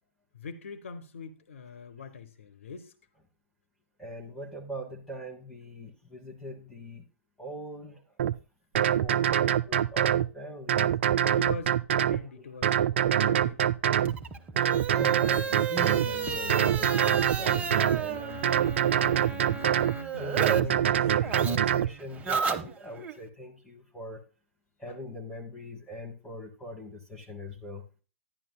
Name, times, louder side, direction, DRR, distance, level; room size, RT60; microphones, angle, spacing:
voice 1, 0.3-2.9 11.2-12.7 13.1-13.6 20.9-21.0 24.9-25.0, left 4 dB, 65° left, 0.9 m, -42 dB
voice 2, 4.0-7.0 7.4-8.1 9.0-10.9 12.1-12.5 14.3-14.5 14.9-19.8 20.2-24.2 24.8-27.8, equal, 5° left, 1.2 m, -41 dB
sound 1, 8.2-8.3 8.8-10.3 10.7-12.2 12.6-14.2 14.6-16.1 16.5-18.0 18.4-20.0 20.4-21.9, right 10 dB, 55° right, 0.3 m, -24 dB
sound 2, 14.0-20.6 20.9-23.1, right 6 dB, 20° right, 0.8 m, -33 dB
sound 3, 16.0-21.8, equal, 90° left, 2.5 m, -44 dB
11.0 x 10.5 x 2.2 m
figure-of-eight pair, 110°, 7 cm